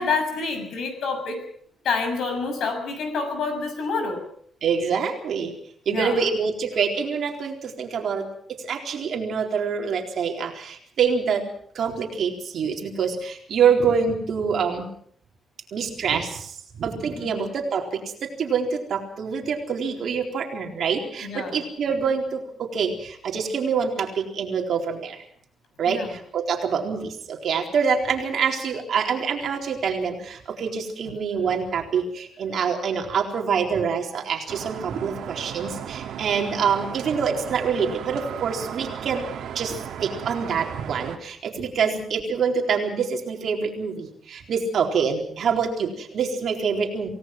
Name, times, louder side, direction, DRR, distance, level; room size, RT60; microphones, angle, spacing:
voice 1, 0.0-1.5 1.8-4.3 5.9-6.3 17.1-17.4 21.2-21.7 25.8-26.2 31.1-31.2 41.8-42.1, left 4 dB, 70° left, 7 dB, 6.9 m, -28 dB
voice 2, 4.6-5.5 5.9-11.4 11.7-14.9 15.7-16.5 16.8-25.2 25.8-39.2 39.5-47.1, right 6 dB, 55° right, 2 dB, 4.1 m, -26 dB
sound 1, 34.5-41.2, right 9 dB, 90° right, 2.0 m, -35 dB
27.5 x 18.5 x 6.0 m, 0.62 s
wide cardioid pair, 180°, 0 cm